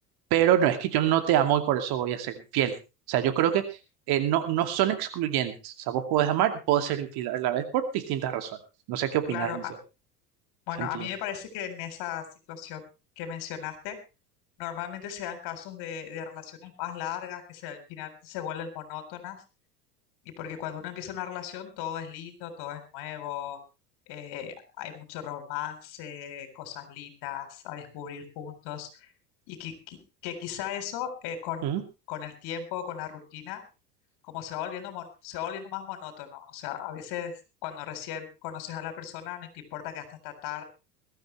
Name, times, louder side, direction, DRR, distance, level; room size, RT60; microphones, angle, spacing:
voice 1, 0.3-2.7 3.1-3.6 4.1-8.5 8.9-9.6 10.8-11.1 31.6-31.8, right 11 dB, 50° right, 8 dB, 2.5 m, -25 dB
voice 2, 9.3-9.7 10.7-12.8 13.2-14.0 14.6-19.4 20.2-23.6 24.1-29.1 29.5-31.7 32.1-33.6 34.2-40.6, left 10 dB, 55° left, 8 dB, 4.0 m, -37 dB
21.5 x 13.0 x 3.3 m, 0.29 s
hypercardioid pair, 80°, 47 cm